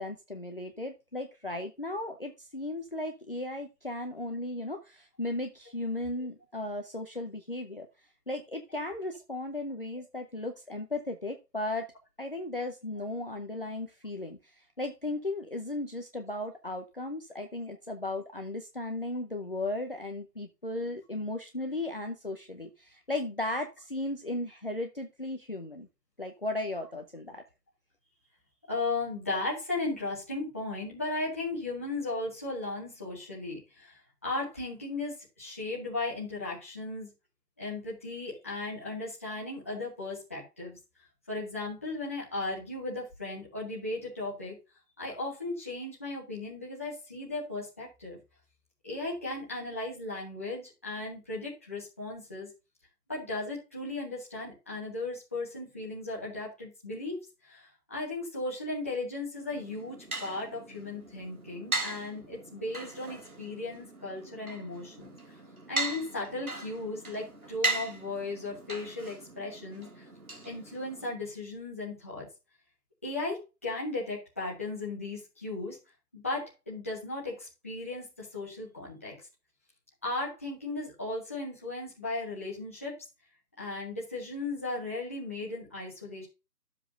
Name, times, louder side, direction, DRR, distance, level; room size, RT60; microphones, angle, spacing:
voice 1, 0.0-7.9 8.3-11.9 12.2-25.9 26.2-27.4, left 2 dB, 35° left, 5 dB, 0.8 m, -36 dB
voice 2, 28.7-37.1 37.6-40.8 41.3-44.6 45.0-48.2 48.8-52.5 53.1-65.2 65.7-70.1 70.4-72.3 73.0-75.8 76.1-79.1 80.0-83.0 83.6-86.3, left 2 dB, 10° left, -7 dB, 1.4 m, -36 dB
sound 1, 59.5-71.1, right 2 dB, 60° right, 3.2 m, -38 dB
12.5 x 7.4 x 2.6 m, 0.28 s
figure-of-eight pair, 175°, 48 cm